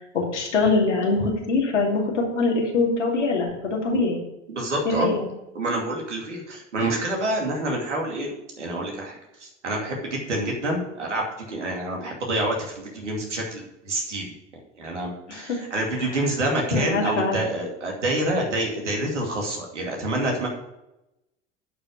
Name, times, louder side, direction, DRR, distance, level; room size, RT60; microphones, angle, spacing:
voice 1, 0.1-4.2 4.8-5.3 15.3-15.6 16.0-16.1 16.7-17.4, left 3 dB, 90° left, -2 dB, 2.7 m, -23 dB
voice 2, 4.5-5.1 5.5-14.2 14.8-20.5, right 1 dB, 90° right, 0 dB, 2.6 m, -27 dB
11.0 x 5.4 x 6.5 m, 0.91 s
hypercardioid pair, 80°, 35 cm